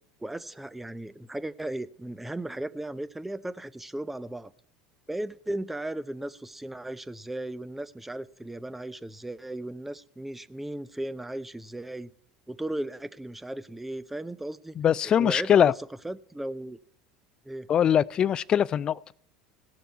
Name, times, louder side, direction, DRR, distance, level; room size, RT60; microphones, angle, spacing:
voice 1, 0.2-4.5 5.1-12.1 12.5-14.8 15.0-15.7 16.0-16.8 17.4-17.7, right 1 dB, 5° right, 16 dB, 0.6 m, -36 dB
voice 2, 14.8-15.7 17.7-19.1, left 9 dB, 35° left, 22 dB, 0.4 m, -22 dB
18.0 x 6.8 x 4.6 m, 0.65 s
figure-of-eight pair, 70°, 2 cm